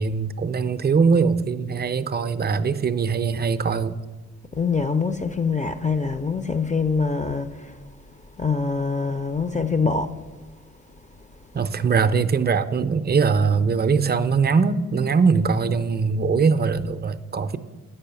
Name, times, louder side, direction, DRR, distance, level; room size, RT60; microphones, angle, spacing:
voice 1, 0.0-4.0 11.5-17.6, right 5 dB, 30° right, 0.5 m, -21 dB
voice 2, 4.5-7.7 8.4-10.1, left 5 dB, 25° left, 0.5 m, -24 dB
8.4 x 5.5 x 6.9 m
cardioid pair, 70°, 33 cm